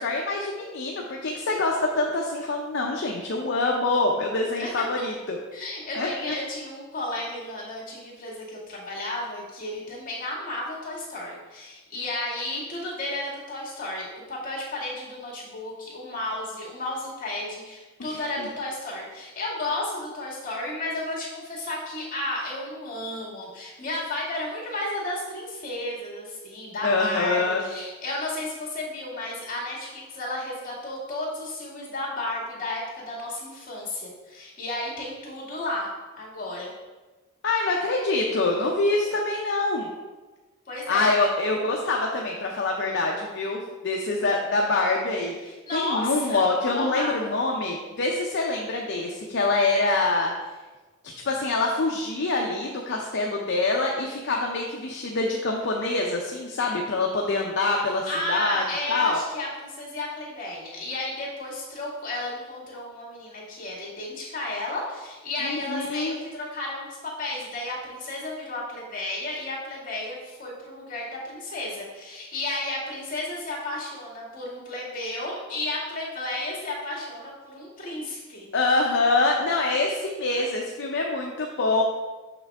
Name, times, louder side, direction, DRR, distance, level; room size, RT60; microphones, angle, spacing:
voice 1, 0.0-5.4 5.9-6.4 18.0-18.5 26.8-27.6 37.4-39.9 40.9-50.3 51.2-58.6 58.9-59.2 65.4-66.2 78.5-81.8, left 3 dB, 60° left, 0 dB, 0.6 m, -25 dB
voice 2, 5.5-35.9 36.1-36.7 40.7-41.1 45.7-47.3 58.1-78.5 80.3-80.4, left 2 dB, 45° left, -4 dB, 2.1 m, -33 dB
6.4 x 5.9 x 3.5 m, 1.2 s
head